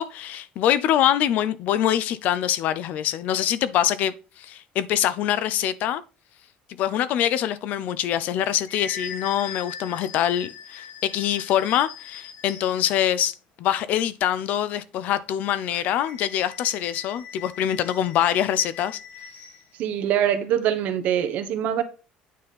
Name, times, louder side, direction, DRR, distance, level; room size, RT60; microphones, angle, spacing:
voice 1, 0.0-6.0 6.8-19.0, left 11 dB, 55° left, 0.6 m, -24 dB
sound 1, 8.7-12.9 15.7-19.7, left 7 dB, 80° left, 2.0 m, -41 dB
voice 2, 19.8-21.8, right 10 dB, 55° right, 1.3 m, -23 dB
9.3 x 4.2 x 5.4 m
cardioid pair, 170°, 3 cm